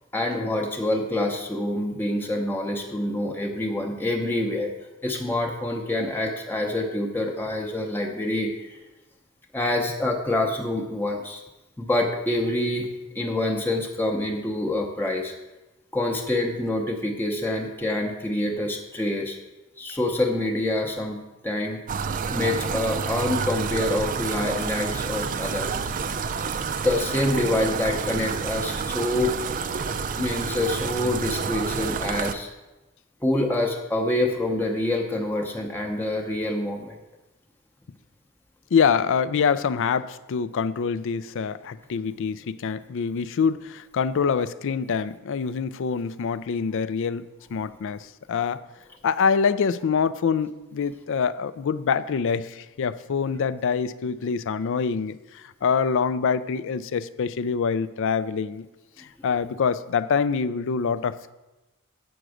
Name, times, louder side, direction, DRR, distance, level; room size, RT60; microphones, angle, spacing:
voice 1, 0.1-4.7 5.0-8.8 9.5-11.4 11.8-15.3 15.9-19.4 19.8-21.2 21.4-21.8 22.3-25.7 26.7-29.3 30.2-32.5 33.2-37.0, left 1 dB, 10° left, 0 dB, 0.7 m, -26 dB
sound 1, 21.9-32.3, right 5 dB, 35° right, 0.4 m, -29 dB
voice 2, 38.7-48.6 49.0-58.6 59.0-61.3, left 6 dB, 60° left, 16 dB, 0.4 m, -25 dB
7.9 x 6.0 x 6.3 m, 1.1 s
head